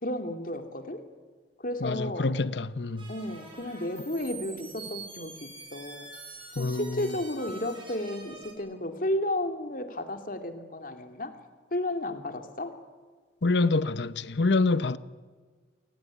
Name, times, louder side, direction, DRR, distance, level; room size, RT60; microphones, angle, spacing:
voice 1, 0.0-1.0 1.6-2.3 3.1-6.1 6.5-11.3 11.7-12.8, left 1 dB, 50° left, 2.7 m, -33 dB
voice 2, 1.8-3.1 6.6-7.1 13.4-15.0, left 3 dB, 75° left, 0.9 m, -26 dB
sound 1, 3.0-8.5, right 3 dB, 30° right, 7.3 m, -45 dB
28.5 x 18.0 x 10.0 m
head